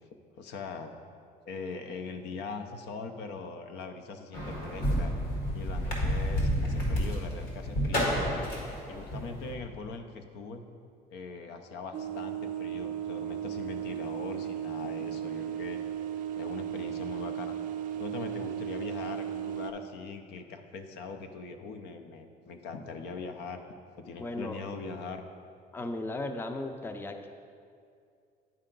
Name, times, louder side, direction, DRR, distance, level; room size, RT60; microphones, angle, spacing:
voice 1, 0.4-0.9 1.5-5.1 5.5-8.1 8.9-10.6 11.1-15.8 16.4-17.5 18.0-23.6 24.0-25.2, left 4 dB, 80° left, 6 dB, 0.6 m, -41 dB
sound 1, 4.3-9.5, equal, 60° left, 1.6 m, -30 dB
sound 2, 11.9-19.7, right 10 dB, 50° right, 0.4 m, -35 dB
voice 2, 24.2-24.6 25.7-27.3, left 2 dB, 15° left, 7 dB, 0.4 m, -36 dB
9.7 x 4.5 x 3.8 m, 2.3 s
cardioid pair, 110°, 17 cm